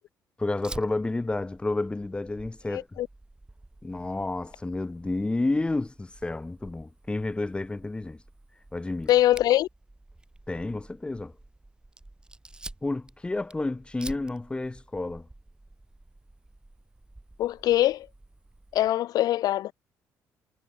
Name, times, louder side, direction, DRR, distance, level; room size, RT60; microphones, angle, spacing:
voice 1, 0.4-3.0 3.8-8.2 8.7-9.1 10.5-11.3 12.8-15.3, left 2 dB, 15° left, 1.0 m, -30 dB
Fire, 0.6-18.9, right 2 dB, 10° right, 4.1 m, -49 dB
voice 2, 2.7-3.1 9.1-9.7 17.4-18.1 18.7-19.7, left 13 dB, 65° left, 0.3 m, -23 dB
cardioid pair, 85°, 7 cm